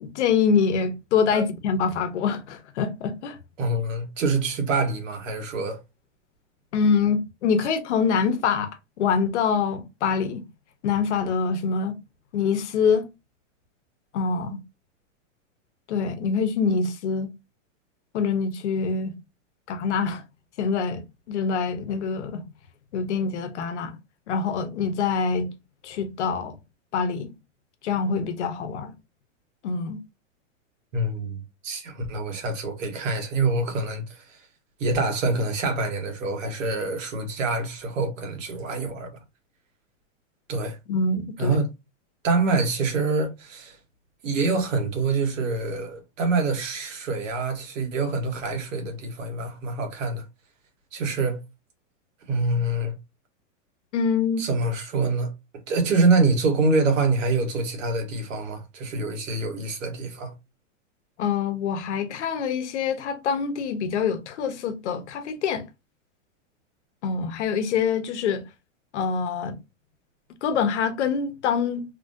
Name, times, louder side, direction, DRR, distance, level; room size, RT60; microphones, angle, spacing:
voice 1, 0.0-3.4 6.7-8.7 9.0-10.4 10.8-12.0 12.3-13.1 14.1-14.6 15.9-17.3 18.1-19.1 19.7-20.2 20.6-22.5 22.9-24.0 24.3-25.5 25.8-26.6 26.9-27.3 27.8-28.9 29.6-30.0 40.9-41.6 53.9-54.4 61.2-65.6 67.0-68.4 68.9-69.6 70.4-71.8, left 6 dB, 60° left, 0.9 m, -25 dB
voice 2, 3.6-5.8 30.9-34.4 34.8-39.1 40.5-40.8 41.4-41.7 42.2-43.8 44.2-50.2 50.9-51.4 52.3-52.9 54.4-55.3 55.7-60.3, right 3 dB, 75° right, 1.4 m, -25 dB
2.9 x 2.6 x 2.6 m
supercardioid pair, 165°, 38 cm